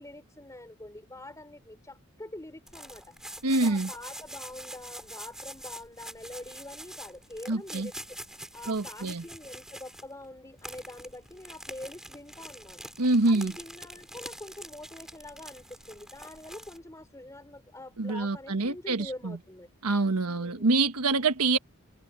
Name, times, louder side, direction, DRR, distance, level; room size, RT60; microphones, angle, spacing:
voice 1, 0.0-3.1 3.4-7.9 8.5-12.8 13.2-19.7 20.2-20.7, left 1 dB, 15° left, 3.5 m, -45 dB
sound 1, 2.7-10.3 10.6-16.8, right 1 dB, ahead, 4.7 m, -45 dB
voice 2, 3.4-3.9 7.5-7.9 8.7-9.2 13.0-13.5 18.0-19.4 19.8-21.6, right 3 dB, 85° right, 1.3 m, -26 dB
head